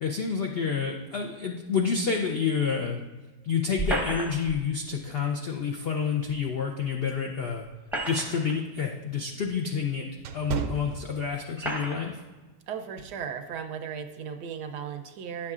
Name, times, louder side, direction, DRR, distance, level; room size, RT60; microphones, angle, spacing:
voice 1, 0.0-3.0 3.4-7.7 8.1-12.2, left 6 dB, 80° left, 2 dB, 0.5 m, -29 dB
sound 1, 3.8-4.6 6.3-6.4 7.6-8.6 9.4-9.5 10.5-10.6 11.6-12.1, right 1 dB, ahead, 0.5 m, -32 dB
sound 2, 8.0-11.7 12.1-12.4 13.0-13.2, right 6 dB, 70° right, 0.8 m, -36 dB
voice 2, 12.7-15.5, right 7 dB, 85° right, 6 dB, 1.3 m, -36 dB
10.5 x 7.3 x 2.4 m, 1.2 s
omnidirectional pair, 1.7 m